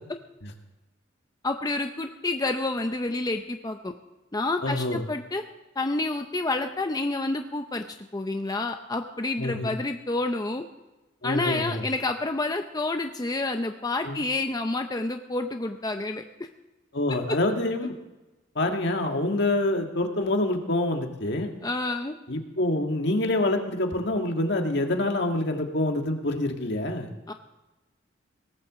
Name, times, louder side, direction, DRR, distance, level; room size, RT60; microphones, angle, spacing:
voice 1, 1.4-3.9 4.3-5.4 5.8-7.8 8.1-10.6 11.2-16.2 17.3-17.4 21.6-22.2 27.3-27.4, left 2 dB, 20° left, 6 dB, 0.6 m, -29 dB
voice 2, 4.6-5.0 9.4-9.7 11.2-11.8 14.0-14.2 16.9-17.9 18.6-21.5 22.3-27.1, left 2 dB, 60° left, 3 dB, 1.9 m, -26 dB
18.5 x 7.8 x 7.4 m, 1.1 s
head